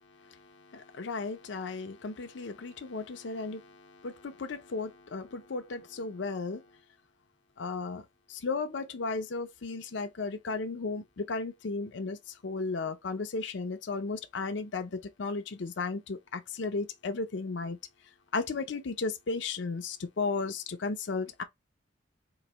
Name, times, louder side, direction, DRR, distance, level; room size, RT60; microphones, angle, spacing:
voice 1, 0.1-6.7 7.6-17.8 18.3-21.4, left 4 dB, 65° left, 0.6 m, -35 dB
3.9 x 2.6 x 3.0 m
head